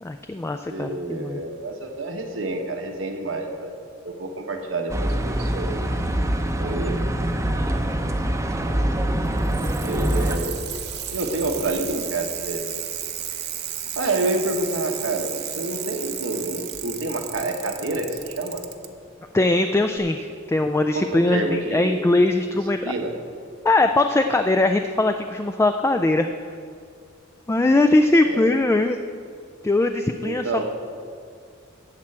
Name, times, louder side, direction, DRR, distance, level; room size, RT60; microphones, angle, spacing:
voice 1, 0.0-1.4 19.3-22.9 23.6-26.3 27.5-29.0 29.6-30.6, left 2 dB, 15° left, 7 dB, 0.3 m, -21 dB
voice 2, 0.7-3.7 4.0-5.8 6.6-7.0 9.8-10.6 11.1-12.6 13.9-18.6 20.9-22.1 22.8-23.1 28.2-28.4 30.2-30.6, right 2 dB, 75° right, 3 dB, 1.3 m, -28 dB
sound 1, 4.9-10.4, right 1 dB, 15° right, 0.7 m, -24 dB
Bicycle, 9.3-18.9 20.0-20.1, right 10 dB, 55° right, 0.8 m, -33 dB
13.5 x 4.5 x 8.6 m, 2.2 s
head